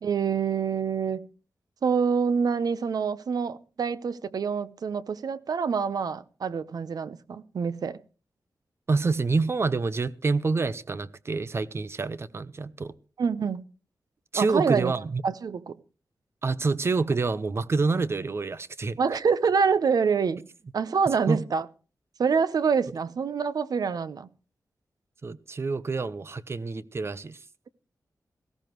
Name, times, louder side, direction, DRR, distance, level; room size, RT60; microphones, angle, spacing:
voice 1, 0.0-1.3 1.8-8.0 13.2-13.6 14.3-14.9 15.2-15.8 19.0-20.5 20.7-21.7 22.2-24.3, right 6 dB, 70° right, 0.8 m, -26 dB
voice 2, 8.9-12.9 14.3-15.2 16.4-19.0 21.3-21.4 25.2-27.4, right 4 dB, 40° right, 0.7 m, -27 dB
18.5 x 15.5 x 3.1 m
wide cardioid pair, 150°, 7 cm